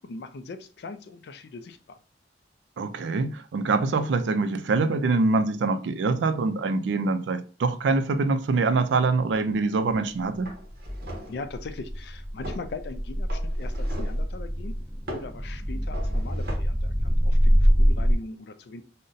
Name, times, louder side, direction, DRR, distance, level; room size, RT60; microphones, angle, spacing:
voice 1, 0.0-2.0 11.3-14.7 15.1-18.8, left 3 dB, 60° left, 0.4 m, -40 dB
voice 2, 2.8-10.5, right 3 dB, 80° right, 0.4 m, -24 dB
sound 1, 9.9-10.1 10.5-11.4 12.4-12.7 13.3-14.3 15.1-15.4 15.9-16.6, equal, 55° right, 0.8 m, -39 dB
sound 2, 10.7-18.2, equal, 10° right, 0.9 m, -24 dB
2.6 x 2.1 x 3.8 m
head